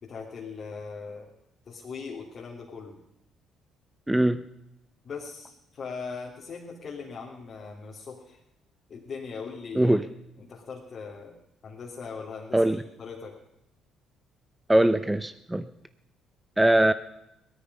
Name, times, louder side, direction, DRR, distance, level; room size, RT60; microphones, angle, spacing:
voice 1, 0.0-1.3 1.6-3.0 5.0-8.4 8.9-10.0 10.4-11.4 11.6-13.4, left 5 dB, 50° left, -2 dB, 2.9 m, -40 dB
voice 2, 4.1-4.4 9.7-10.0 12.5-12.8 14.7-15.6 16.6-16.9, right 1 dB, 10° right, 12 dB, 0.8 m, -21 dB
18.0 x 13.0 x 5.4 m, 0.84 s
hypercardioid pair, 50°, 0 cm